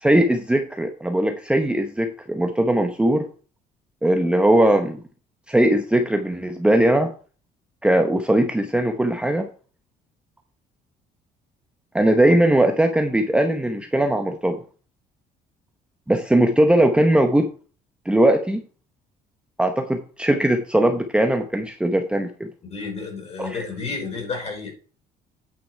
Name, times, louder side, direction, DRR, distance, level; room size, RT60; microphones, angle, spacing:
voice 1, 0.0-3.2 4.0-5.0 5.5-7.1 7.8-9.5 11.9-14.6 16.1-17.5 18.1-18.6 19.6-22.5 23.4-23.6, right 1 dB, 5° right, 4 dB, 0.9 m, -19 dB
voice 2, 22.6-24.7, left 4 dB, 40° left, 1 dB, 4.6 m, -31 dB
9.1 x 6.0 x 4.6 m, 0.39 s
cardioid pair, 110°, 17 cm